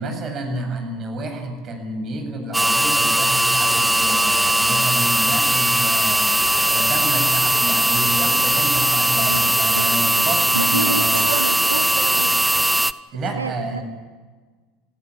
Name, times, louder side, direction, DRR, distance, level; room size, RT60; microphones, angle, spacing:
voice 1, 0.0-6.3 6.6-11.2 13.1-13.8, right 2 dB, 40° right, 5 dB, 7.8 m, -29 dB
sound 1, 2.5-12.9, right 1 dB, 5° right, 0.8 m, -19 dB
Bell, 5.5-8.6 9.0-9.1, left 1 dB, 80° left, 7.7 m, -45 dB
sound 2, 6.4-12.7, right 9 dB, 60° right, 2.1 m, -37 dB
voice 2, 9.3-10.3 10.5-12.5 13.3-13.8, right 3 dB, 90° right, 10 dB, 0.9 m, -29 dB
29.0 x 16.5 x 9.5 m, 1.4 s
figure-of-eight pair, 75°, 0 cm